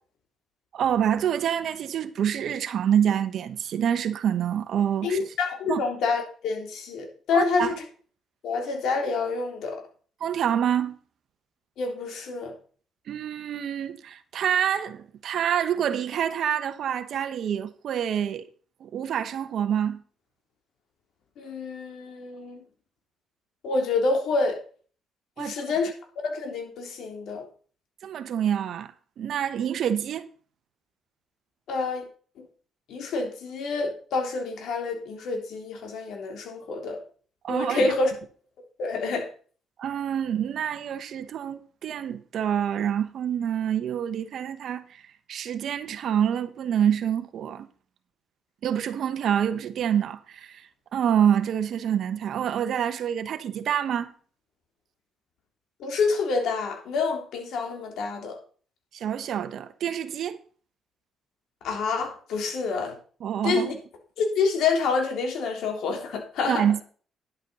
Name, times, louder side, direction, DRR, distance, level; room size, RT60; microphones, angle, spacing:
voice 1, 0.7-5.3 5.7-5.9 7.3-7.8 10.2-11.0 13.1-18.5 18.8-20.0 25.4-25.5 28.0-30.2 37.4-37.9 39.8-45.0 45.3-47.7 48.6-54.1 58.9-60.4 63.2-63.8 66.5-66.8, right 9 dB, 70° right, 1.1 m, -27 dB
voice 2, 5.0-7.7 8.4-9.8 11.8-12.5 21.4-22.6 23.6-24.6 25.4-25.9 26.2-27.4 31.7-32.0 32.4-32.5 32.9-37.0 37.5-38.1 38.8-39.3 55.8-58.4 61.6-63.0 63.4-63.7 64.2-66.6, left 4 dB, 75° left, 3.4 m, -27 dB
10.5 x 8.3 x 5.4 m
cardioid pair, 90°, 0 cm